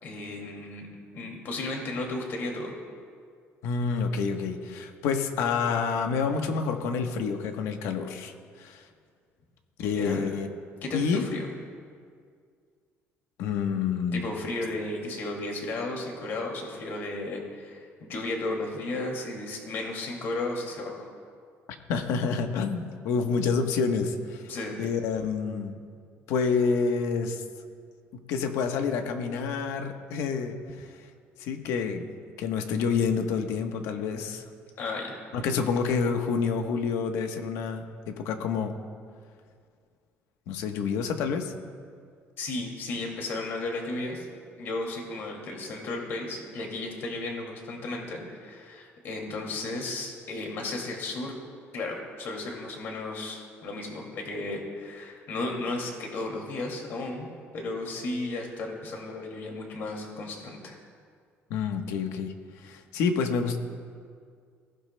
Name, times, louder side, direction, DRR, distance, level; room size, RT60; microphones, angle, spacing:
voice 1, 0.0-2.7 9.8-10.2 10.8-11.5 14.1-21.1 24.5-24.8 34.8-35.1 42.4-44.3 44.6-51.3 51.7-57.3 57.5-60.8, left 2 dB, 50° left, 1 dB, 2.3 m, -34 dB
voice 2, 3.6-8.3 8.6-8.8 9.8-10.5 10.9-11.4 13.4-14.2 21.9-24.4 24.8-25.8 26.3-27.4 28.3-30.9 31.4-32.1 32.4-34.4 35.3-38.7 40.5-41.5 61.5-62.3 62.6-63.6, left 5 dB, 85° left, 5 dB, 1.1 m, -28 dB
20.5 x 15.5 x 2.2 m, 2.1 s
cardioid pair, 175°, 5 cm